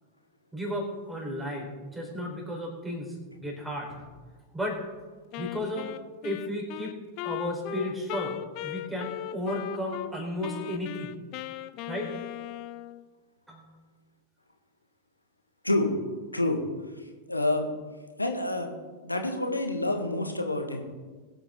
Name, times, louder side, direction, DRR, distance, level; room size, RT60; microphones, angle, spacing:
voice 1, 0.5-4.0 4.5-4.8 5.4-5.9 6.2-7.0 7.2-11.1 11.9-12.1 13.5-13.6, equal, 5° right, 0 dB, 4.3 m, -34 dB
Wind instrument woodwind instrument, 5.3-10.1 10.4-13.0, left 13 dB, 45° left, 0.5 m, -38 dB
voice 2, 17.3-17.7 18.2-18.7 19.0-20.8, left 2 dB, 85° left, 4 dB, 1.7 m, -27 dB
22.0 x 8.0 x 3.8 m, 1.4 s
figure-of-eight pair, 90°, 0 cm